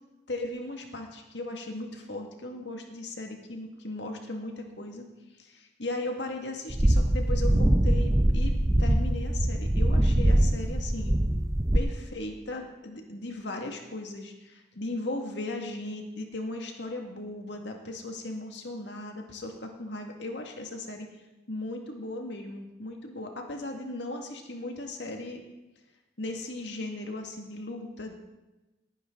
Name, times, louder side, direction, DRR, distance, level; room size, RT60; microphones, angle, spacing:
voice 1, 0.3-5.1 5.4-11.2 11.7-21.1 21.5-25.4 26.2-28.1, left 2 dB, 65° left, 3 dB, 1.9 m, -37 dB
sound 1, 6.7-11.8, right 1 dB, 20° right, 0.6 m, -23 dB
18.5 x 10.0 x 3.8 m, 1.1 s
head